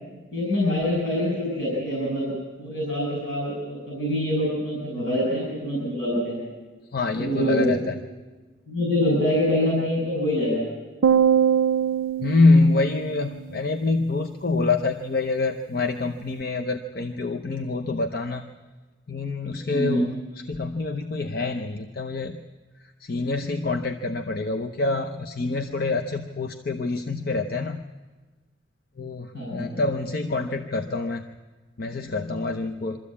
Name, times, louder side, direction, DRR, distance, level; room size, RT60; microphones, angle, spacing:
voice 1, 0.3-2.3 2.6-6.4 7.1-7.8 8.7-10.6 19.7-20.1 29.3-29.8, left 1 dB, 65° left, -4 dB, 6.0 m, -25 dB
voice 2, 6.9-8.0 12.2-18.4 19.1-20.1 20.5-22.4 23.0-27.8 29.0-31.2 31.8-33.0, left 3 dB, 50° left, 5 dB, 0.7 m, -25 dB
sound 1, 11.0-13.5, right 8 dB, 85° right, 0.5 m, -22 dB
23.0 x 13.5 x 8.4 m, 1.3 s
head